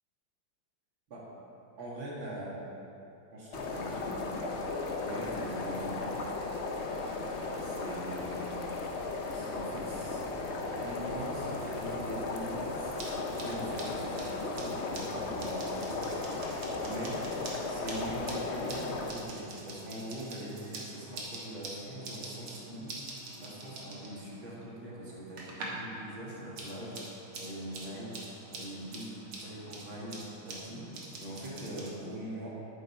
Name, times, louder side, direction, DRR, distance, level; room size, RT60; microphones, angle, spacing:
voice 1, 1.8-2.6 3.3-4.6 5.0-6.1 7.6-8.5 9.3-10.2 10.7-16.5 16.8-17.3 17.6-23.0 23.4-27.0 27.4-28.2 28.5-30.9 31.2-32.5, right 1 dB, 70° right, -6 dB, 2.8 m, -42 dB
sound 1, 3.5-19.1, left 3 dB, 55° left, 0.7 m, -36 dB
sound 2, 12.7-25.9 26.2-31.9, right 2 dB, 85° right, 2.3 m, -46 dB
11.0 x 7.7 x 4.5 m, 2.9 s
omnidirectional pair, 2.2 m